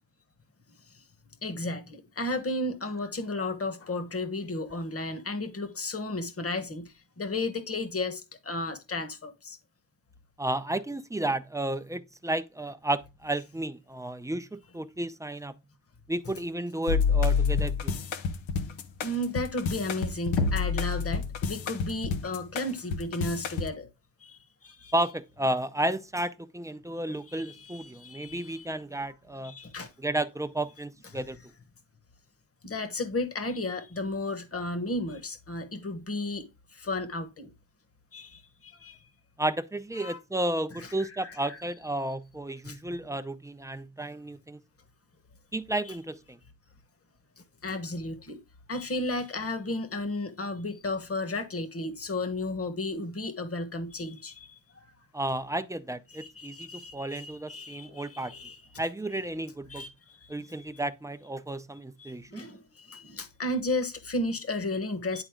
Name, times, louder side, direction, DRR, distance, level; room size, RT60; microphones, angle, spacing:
voice 1, 1.4-9.6 16.2-16.3 19.0-23.9 24.2-24.9 27.3-28.7 29.0-29.1 29.4-29.9 31.1-31.2 32.6-37.5 38.1-39.0 40.0-40.2 40.7-41.6 42.6-42.8 45.8-46.0 47.4-48.4 48.7-54.8 56.1-58.8 59.7-60.7 62.0-65.2, left 2 dB, 30° left, 1.4 m, -34 dB
voice 2, 10.4-15.5 16.1-17.9 24.9-29.5 30.0-31.4 39.4-44.6 45.5-46.4 55.1-58.3 58.8-59.8 60.3-62.4, right 1 dB, 5° right, 0.6 m, -32 dB
sound 1, 16.9-23.7, left 5 dB, 90° left, 0.9 m, -28 dB
10.0 x 4.0 x 3.7 m
cardioid pair, 75°, 45 cm